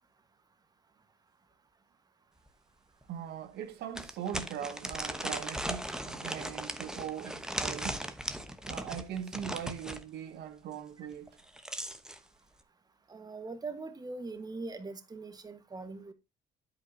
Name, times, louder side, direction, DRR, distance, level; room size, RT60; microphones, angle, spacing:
sound 1, 2.5-2.6 3.0-3.1 3.9-10.0 11.3-12.2, right 1 dB, 5° right, 1.1 m, -38 dB
voice 1, 3.1-8.1 8.7-11.3, right 9 dB, 75° right, 1.1 m, -40 dB
voice 2, 13.1-16.1, right 3 dB, 25° right, 1.5 m, -41 dB
9.6 x 8.5 x 2.8 m
cardioid pair, 110°, 17 cm